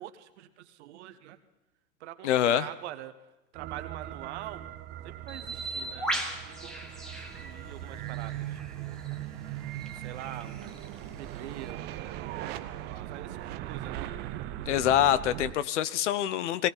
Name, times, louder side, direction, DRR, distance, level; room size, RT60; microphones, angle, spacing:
voice 1, 0.0-1.4 2.0-3.1 3.5-4.7 5.0-9.0 9.9-12.0 12.8-14.1 14.6-15.1, right 13 dB, 45° right, 12 dB, 1.2 m, -45 dB
voice 2, 2.2-2.7 14.7-16.7, left 11 dB, 50° left, 15 dB, 0.8 m, -25 dB
sound 1, 3.6-15.5, right 13 dB, 25° right, 0.6 m, -39 dB
Bird, 5.3-11.7, right 1 dB, ahead, 1.6 m, -39 dB
19.0 x 18.0 x 4.0 m, 1.0 s
figure-of-eight pair, 105°, 45 cm